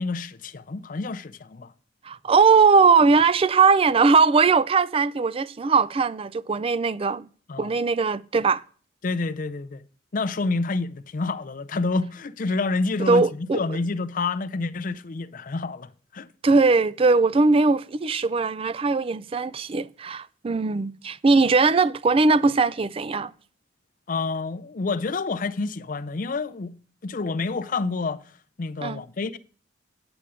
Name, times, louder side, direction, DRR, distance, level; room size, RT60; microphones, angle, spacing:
voice 1, 0.0-1.7 7.5-7.7 9.0-9.8 10.1-16.3 24.1-26.7 27.0-28.2 28.6-29.4, left 3 dB, 45° left, 0.5 m, -28 dB
voice 2, 2.0-7.3 7.6-8.6 13.1-13.6 16.4-23.3 28.8-29.0, right 4 dB, 30° right, 0.3 m, -20 dB
8.9 x 7.0 x 4.9 m
head